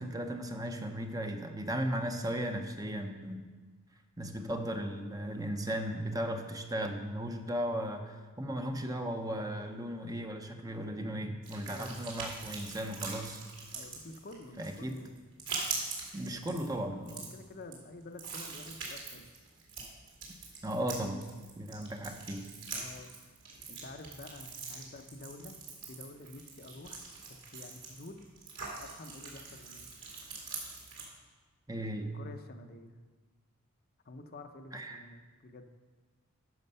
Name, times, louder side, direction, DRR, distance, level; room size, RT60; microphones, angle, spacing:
voice 1, 0.0-3.5 4.2-13.4 14.6-15.0 16.1-17.2 20.6-21.2 21.6-22.5 31.7-32.1 34.7-35.0, equal, 15° right, 5 dB, 0.6 m, -36 dB
sound 1, 11.4-31.1, right 4 dB, 55° right, 2.4 m, -43 dB
voice 2, 11.7-12.1 13.7-15.2 16.3-19.3 22.7-23.4 23.7-28.3 28.8-29.9 32.1-33.0 34.0-35.6, left 2 dB, 45° left, 6 dB, 0.6 m, -49 dB
11.0 x 6.5 x 5.4 m, 1.4 s
head